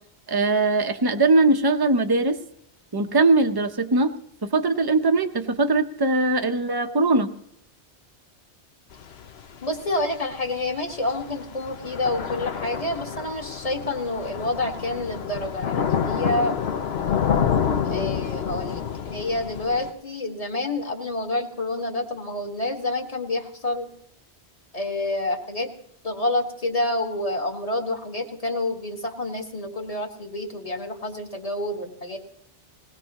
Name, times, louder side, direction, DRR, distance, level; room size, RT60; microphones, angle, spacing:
voice 1, 0.3-2.4 2.9-4.1 4.4-7.3, right 3 dB, 20° right, 7 dB, 0.8 m, -21 dB
Thunder / Rain, 8.9-19.9, left 7 dB, 65° left, 1.0 m, -28 dB
voice 2, 9.6-16.6 17.9-23.9 24.7-25.7 26.0-32.2, left 2 dB, 30° left, 2 dB, 1.8 m, -28 dB
20.5 x 19.0 x 3.0 m, 0.73 s
omnidirectional pair, 1.2 m